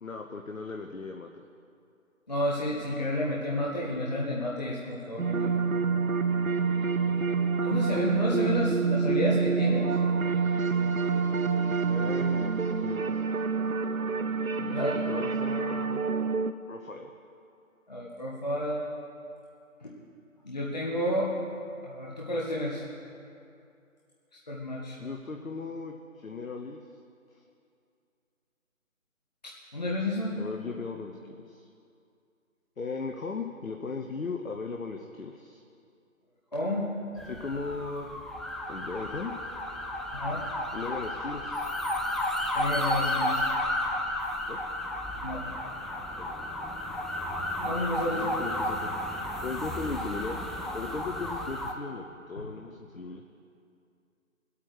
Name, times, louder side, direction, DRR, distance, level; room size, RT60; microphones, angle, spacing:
voice 1, 0.0-1.4 11.9-12.5 12.8-13.1 14.8-16.0 16.7-17.1 25.0-26.8 27.3-27.4 30.4-31.7 32.8-35.6 37.2-38.1 38.7-39.3 40.7-41.7 44.5-44.6 46.2-46.3 48.0-48.9 49.4-50.4 50.7-53.2, left 4 dB, 70° left, 3 dB, 0.9 m, -37 dB
voice 2, 2.3-5.5 7.6-9.9 14.6-15.0 17.9-18.8 19.8-19.9 20.4-21.3 21.8-22.8 24.5-25.0 29.4-30.4 36.5-36.9 40.1-40.4 42.5-43.4 45.2-45.4 47.6-48.2 52.4-52.5, left 1 dB, 30° left, -4 dB, 0.9 m, -31 dB
sound 1, 5.2-16.5, right 5 dB, 75° right, 0.7 m, -27 dB
sound 2, 37.2-51.7, left 1 dB, ahead, 0.4 m, -32 dB
20.0 x 8.6 x 4.7 m, 2.5 s
figure-of-eight pair, 160°, 42 cm